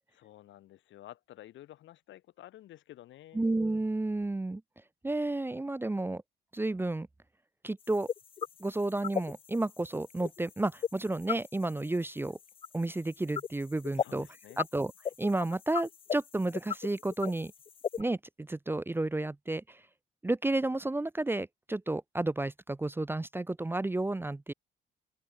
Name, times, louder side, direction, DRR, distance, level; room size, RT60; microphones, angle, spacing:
voice 1, 0.1-3.5 14.0-14.6, left 14 dB, 75° left, 1.7 m, -52 dB
voice 2, 3.3-4.6 5.0-6.2 6.5-7.1 7.6-8.1 8.6-12.4 12.7-14.3 14.6-14.9 15.2-17.5 18.0-19.8 20.2-24.5, right 2 dB, 10° right, 0.7 m, -31 dB
sound 1, 7.8-18.0, left 7 dB, 30° left, 0.4 m, -37 dB
open air
cardioid pair, 100°, 20 cm